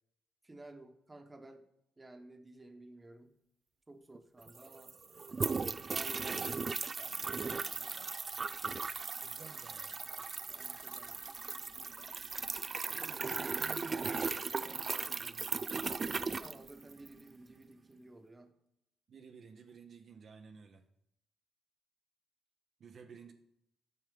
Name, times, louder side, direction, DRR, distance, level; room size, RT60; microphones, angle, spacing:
voice 1, 0.4-1.6 2.0-3.3 3.9-4.9 5.9-6.4 7.0-8.1 10.5-11.2 16.4-18.5, right 2 dB, 20° right, 7 dB, 1.2 m, -54 dB
sound 1, 4.1-4.2 4.4-17.2, right 4 dB, 35° right, 0.4 m, -37 dB
voice 2, 9.2-10.0 13.0-16.0 19.1-20.9 22.8-23.3, right 5 dB, 55° right, 4 dB, 0.8 m, -55 dB
9.5 x 6.1 x 5.1 m, 0.81 s
cardioid pair, 90°, 0 cm